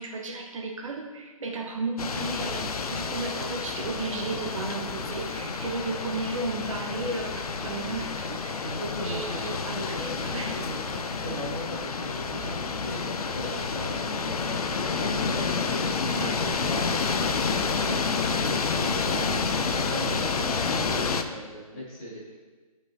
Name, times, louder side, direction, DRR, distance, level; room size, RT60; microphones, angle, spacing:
voice 1, 0.0-8.7 9.0-10.6 15.7-16.4, right 3 dB, 55° right, 0 dB, 1.2 m, -34 dB
sound 1, 2.0-21.2, left 4 dB, 80° left, 0.7 m, -29 dB
voice 2, 8.6-10.7 11.0-15.2 15.7-17.0 17.5-22.4, equal, 15° left, -9 dB, 2.1 m, -39 dB
10.5 x 5.5 x 2.9 m, 1.3 s
hypercardioid pair, 170°, 19 cm